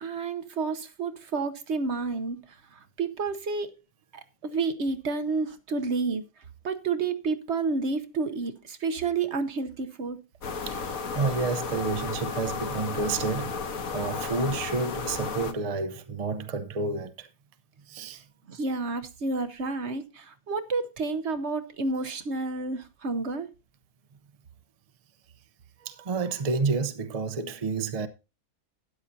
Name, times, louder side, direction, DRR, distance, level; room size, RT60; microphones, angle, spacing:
voice 1, 0.0-3.7 4.1-6.2 6.6-10.2 18.5-23.5, right 4 dB, 55° right, 1.1 m, -30 dB
sound 1, 10.4-15.5, left 5 dB, 80° left, 1.6 m, -33 dB
voice 2, 10.7-13.6 13.9-17.3 17.9-18.2 25.8-28.1, right 4 dB, 35° right, 0.7 m, -30 dB
13.0 x 9.8 x 2.7 m
omnidirectional pair, 1.5 m